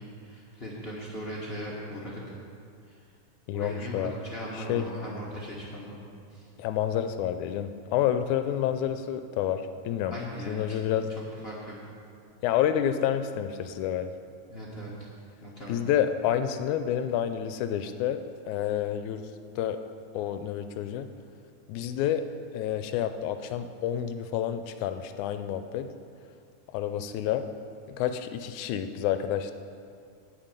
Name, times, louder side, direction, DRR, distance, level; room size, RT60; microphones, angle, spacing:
voice 1, 0.0-2.2 2.9-3.0 3.5-6.5 8.5-8.6 10.1-11.8 14.5-15.1 15.4-15.8, equal, 35° left, -5 dB, 0.9 m, -39 dB
voice 2, 3.5-4.1 4.7-4.9 6.6-10.1 10.5-11.1 12.4-14.1 15.7-19.3 19.6-19.8 20.1-21.1 21.7-22.2 22.5-25.9 26.7-27.5 27.9-29.5, left 10 dB, 80° left, 9 dB, 1.9 m, -29 dB
9.8 x 6.4 x 8.9 m, 2.3 s
omnidirectional pair, 3.5 m